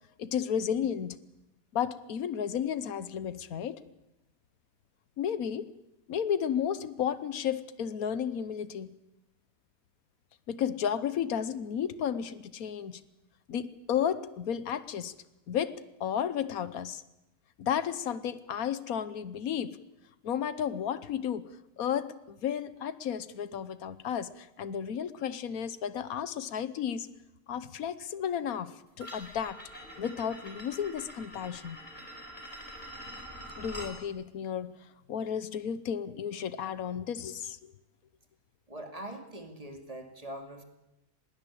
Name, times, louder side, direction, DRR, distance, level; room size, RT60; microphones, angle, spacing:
voice 1, 0.2-1.2 1.7-3.8 5.2-5.7 6.1-8.9 10.5-13.0 13.5-15.1 15.5-17.0 17.6-19.8 20.2-27.1 27.5-29.6 30.0-31.8 33.6-34.8 35.1-37.7, left 8 dB, 90° left, 15 dB, 1.4 m, -33 dB
sound 1, 29.0-34.0, equal, 35° left, 4.6 m, -45 dB
voice 2, 38.7-40.6, right 1 dB, 25° right, 5 dB, 2.7 m, -42 dB
20.5 x 18.5 x 8.7 m, 0.91 s
omnidirectional pair, 1.5 m